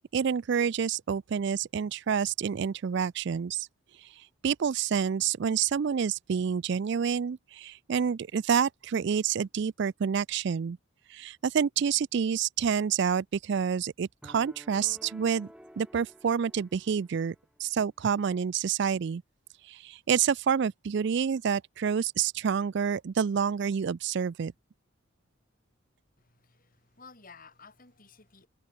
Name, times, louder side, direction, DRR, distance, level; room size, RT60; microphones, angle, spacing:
voice 1, 0.1-3.7 4.0-10.8 11.1-15.5 15.8-19.2 19.7-24.5, right 7 dB, 55° right, 0.4 m, -28 dB
sound 1, 14.2-17.5, equal, 5° right, 3.4 m, -52 dB
voice 2, 26.2-28.5, left 4 dB, 40° left, 5.8 m, -54 dB
head